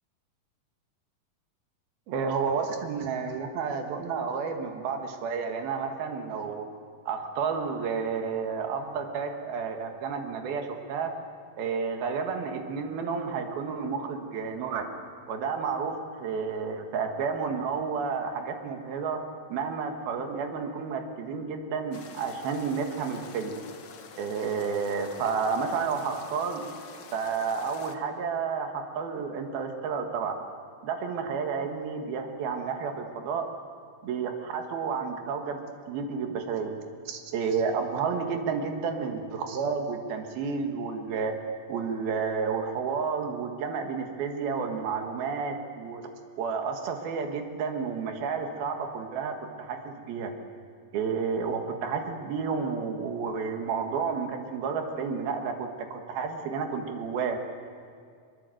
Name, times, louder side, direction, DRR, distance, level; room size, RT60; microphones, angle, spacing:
voice 1, 2.1-6.7 7.1-11.1 11.6-14.9 15.3-19.2 19.5-23.6 24.2-26.6 27.1-30.4 30.8-33.5 34.0-35.6 35.9-36.8 37.1-41.4 41.7-46.0 46.4-50.3 50.9-57.4, right 5 dB, 90° right, 4 dB, 3.6 m, -31 dB
sound 1, 21.9-28.0, left 6 dB, 70° left, 1.1 m, -47 dB
22.5 x 22.5 x 7.8 m, 2.2 s
omnidirectional pair, 4.2 m